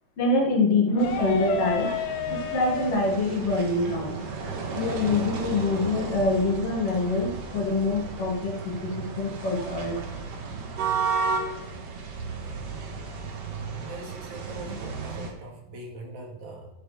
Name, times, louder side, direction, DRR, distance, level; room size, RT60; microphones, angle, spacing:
voice 1, 0.2-1.9 2.3-4.2 4.7-10.0, left 2 dB, 50° left, -2 dB, 3.1 m, -25 dB
sound 1, 0.9-6.5, left 8 dB, 75° left, 1.4 m, -35 dB
sound 2, 1.0-15.3, right 4 dB, 85° right, 3.2 m, -34 dB
voice 2, 13.8-16.7, right 2 dB, 65° right, 0 dB, 3.3 m, -42 dB
12.5 x 8.4 x 3.4 m, 0.98 s
omnidirectional pair, 3.6 m